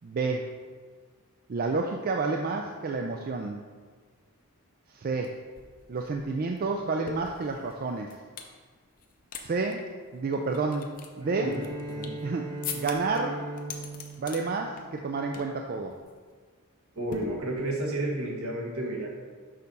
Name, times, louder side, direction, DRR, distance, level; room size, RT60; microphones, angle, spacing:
voice 1, 0.0-0.5 1.5-3.6 4.9-5.4 5.9-8.2 9.4-9.9 10.1-11.6 12.2-13.5 14.2-16.0, right 3 dB, 40° right, 2 dB, 0.4 m, -30 dB
sound 1, 5.2-5.3 5.6-8.5 9.0-9.4 9.7-9.8 10.3-12.2 12.6-13.2 13.6-14.4 14.8-15.1 15.3-15.6 15.9-16.1 17.1-17.9, left 6 dB, 40° left, 0.6 m, -41 dB
Bowed string instrument, 11.2-15.5, right 1 dB, 15° right, 0.9 m, -39 dB
voice 2, 11.4-12.2 16.9-19.1, right 1 dB, 70° right, -1 dB, 1.4 m, -32 dB
6.4 x 4.1 x 5.3 m, 1.5 s
head